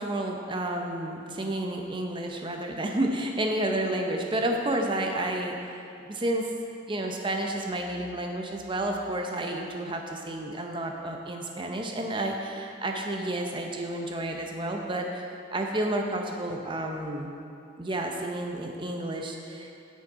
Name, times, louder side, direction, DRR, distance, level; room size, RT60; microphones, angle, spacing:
voice 1, 0.0-6.5 6.9-17.3 17.8-19.7, right 1 dB, 25° right, 2 dB, 0.6 m, -31 dB
9.0 x 6.4 x 4.0 m, 2.7 s
head